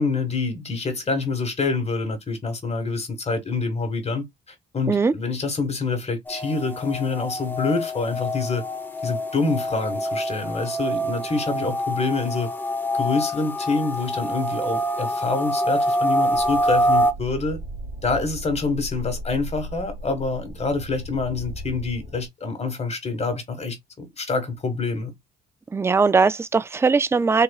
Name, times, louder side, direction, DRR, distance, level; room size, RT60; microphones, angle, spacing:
voice 1, 0.0-4.2 4.7-8.6 9.0-12.5 12.9-17.6 18.0-25.1, left 3 dB, 30° left, 1.7 m, -26 dB
sound 1, 6.3-17.1, equal, 10° left, 0.8 m, -25 dB
sound 2, 16.3-22.3, right 1 dB, 60° right, 1.9 m, -37 dB
voice 2, 25.7-27.4, right 4 dB, 15° right, 0.3 m, -19 dB
4.0 x 2.9 x 2.3 m
cardioid pair, 90°, 20 cm